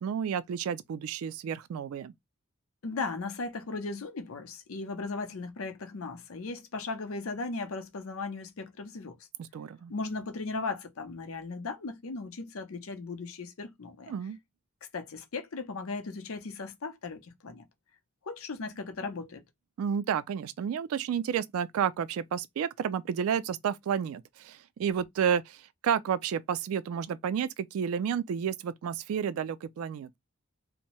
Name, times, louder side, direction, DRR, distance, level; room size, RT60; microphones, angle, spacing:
voice 1, 0.0-2.1 9.5-9.9 14.1-14.4 19.8-30.2, right 8 dB, 75° right, 0.3 m, -31 dB
voice 2, 2.8-9.2 9.9-14.1 14.9-17.7 18.2-19.4, left 3 dB, 70° left, 0.6 m, -37 dB
2.6 x 2.1 x 3.0 m
head